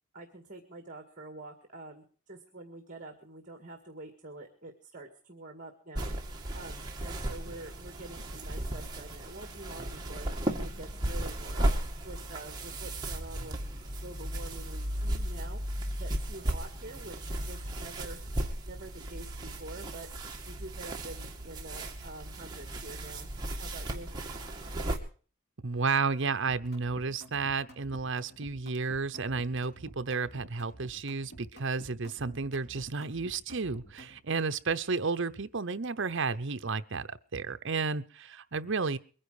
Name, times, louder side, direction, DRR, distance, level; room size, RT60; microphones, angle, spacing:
voice 1, 0.1-11.7 12.0-13.6 14.0-15.6 16.0-18.2 18.7-20.1 20.5-23.3 23.6-24.1, right 2 dB, 35° right, 4 dB, 2.0 m, -47 dB
sound 1, 5.9-25.0, right 1 dB, 20° right, 2.2 m, -35 dB
voice 2, 25.6-39.0, right 4 dB, 60° right, 11 dB, 0.8 m, -32 dB
sound 2, 26.6-34.2, right 1 dB, 50° left, 5.1 m, -50 dB
22.5 x 10.0 x 5.0 m, 0.41 s
head